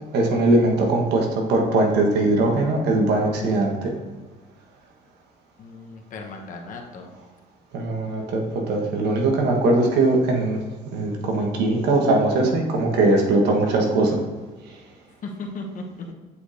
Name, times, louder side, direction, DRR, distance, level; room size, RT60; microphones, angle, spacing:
voice 1, 0.1-3.9 7.7-10.6 10.9-14.2, right 2 dB, 80° right, 1 dB, 1.3 m, -20 dB
voice 2, 5.6-7.1 15.2-16.1, left 3 dB, 50° left, 2 dB, 1.0 m, -36 dB
8.2 x 4.9 x 2.6 m, 1.3 s
cardioid pair, 110°, 17 cm